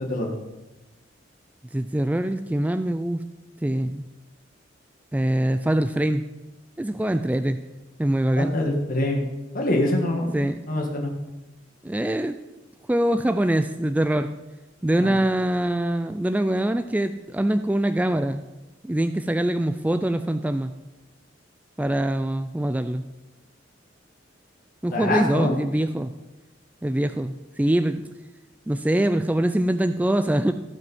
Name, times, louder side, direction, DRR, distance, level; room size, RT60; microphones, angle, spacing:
voice 1, 1.7-3.2 3.6-4.0 5.1-6.2 6.8-7.6 8.0-8.6 10.3-10.6 11.8-12.4 12.9-14.3 14.8-18.4 18.8-20.7 21.8-23.0 24.8-26.1 26.8-28.0 28.7-30.5, right 1 dB, 10° right, 9 dB, 0.3 m, -23 dB
voice 2, 8.4-9.2 9.5-11.1 15.0-15.1 24.9-25.5, left 1 dB, 45° left, 1 dB, 1.7 m, -24 dB
16.5 x 5.5 x 5.5 m, 1.1 s
head